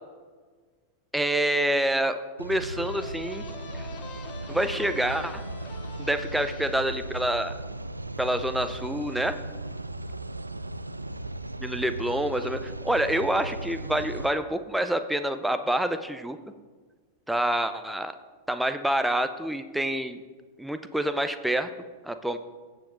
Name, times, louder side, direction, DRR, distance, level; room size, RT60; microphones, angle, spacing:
voice 1, 1.1-3.4 4.5-5.4 6.0-7.5 8.2-9.4 11.6-16.4 17.3-18.1 18.5-20.2 20.6-21.7 22.0-22.4, right 1 dB, 5° right, 9 dB, 0.6 m, -27 dB
sound 1, 2.4-14.3, right 2 dB, 85° right, 0.4 m, -37 dB
sound 2, 2.8-8.3, left 6 dB, 30° left, 0.8 m, -46 dB
16.0 x 7.2 x 3.4 m, 1.4 s
figure-of-eight pair, 90°, 0 cm